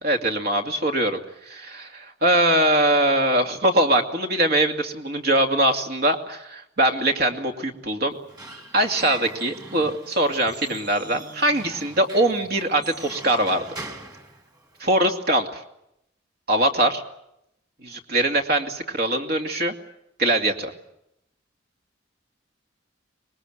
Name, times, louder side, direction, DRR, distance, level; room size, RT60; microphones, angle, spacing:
voice 1, 0.0-1.2 1.5-8.1 8.7-13.9 14.8-15.5 16.5-17.0 17.8-19.7 20.2-20.7, right 1 dB, 55° right, 5 dB, 2.5 m, -22 dB
Squeak / Wood, 8.1-15.0, right 2 dB, 20° right, 2.8 m, -42 dB
25.0 x 22.0 x 7.8 m, 0.80 s
head